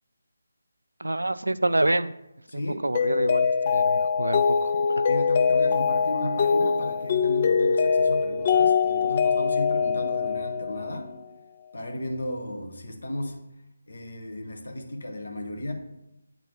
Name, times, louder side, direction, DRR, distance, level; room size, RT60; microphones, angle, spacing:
voice 1, 1.0-2.1 2.5-5.0, right 2 dB, 75° right, 15 dB, 0.3 m, -27 dB
voice 2, 2.5-2.8 5.0-11.1 11.7-13.4 13.9-15.7, left 1 dB, 60° left, 4 dB, 1.1 m, -34 dB
Mallet percussion, 2.9-11.1, left 6 dB, 30° left, 0.4 m, -23 dB
9.0 x 3.7 x 3.1 m, 0.88 s
figure-of-eight pair, 155°, 0 cm